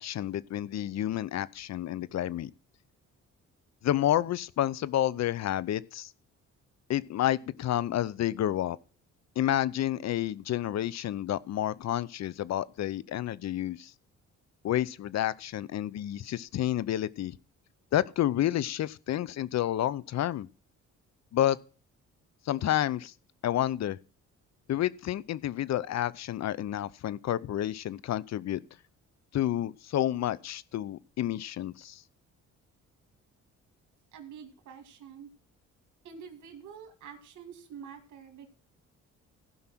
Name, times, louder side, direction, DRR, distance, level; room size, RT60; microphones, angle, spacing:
voice 1, 0.0-2.5 3.8-6.1 6.9-8.8 9.4-13.9 14.6-17.4 17.9-20.5 21.3-21.6 22.5-23.1 23.4-24.0 24.7-28.6 29.3-32.0, left 12 dB, 60° left, 0.7 m, -30 dB
voice 2, 34.1-35.3 36.0-38.5, right 7 dB, 75° right, 2.2 m, -47 dB
15.0 x 5.6 x 6.1 m
cardioid pair, 90°, 30 cm